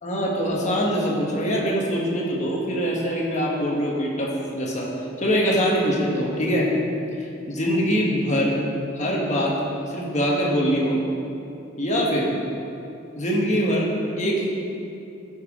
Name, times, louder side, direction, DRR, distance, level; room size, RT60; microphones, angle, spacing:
voice 1, 0.0-4.9 5.2-6.7 7.2-8.6 9.0-9.6 9.9-11.0 11.8-12.3 13.1-14.5, equal, 35° left, -3 dB, 1.5 m, -23 dB
13.5 x 5.8 x 3.8 m, 2.6 s
head